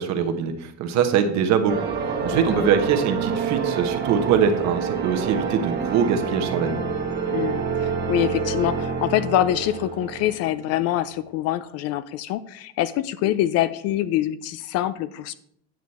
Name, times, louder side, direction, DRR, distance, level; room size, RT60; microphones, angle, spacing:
voice 1, 0.0-1.9 2.2-6.8, right 7 dB, 50° right, 6 dB, 1.2 m, -23 dB
sound 1, 1.7-10.9, right 6 dB, 30° right, 1.4 m, -27 dB
voice 2, 2.3-2.7 7.3-15.3, left 13 dB, 45° left, 15 dB, 0.4 m, -25 dB
9.3 x 6.2 x 4.2 m, 0.70 s
supercardioid pair, 140°, 36 cm